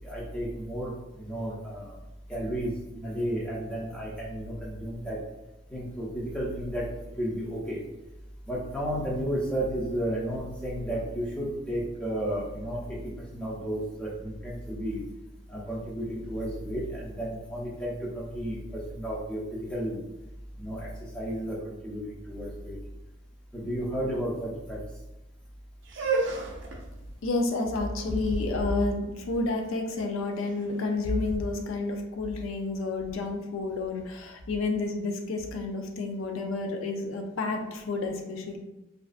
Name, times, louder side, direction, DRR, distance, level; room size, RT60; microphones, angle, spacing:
voice 1, 0.0-2.0 2.3-5.2 5.7-6.9 7.2-7.8 8.5-15.0 15.5-20.0 20.6-20.9 21.1-22.8 23.5-24.8, right 1 dB, 5° left, -6 dB, 0.5 m, -33 dB
sound 1, 25.8-31.7, right 3 dB, 60° right, 0.4 m, -35 dB
voice 2, 27.2-38.6, left 3 dB, 70° left, 3 dB, 0.4 m, -30 dB
2.4 x 2.3 x 2.4 m, 0.98 s
head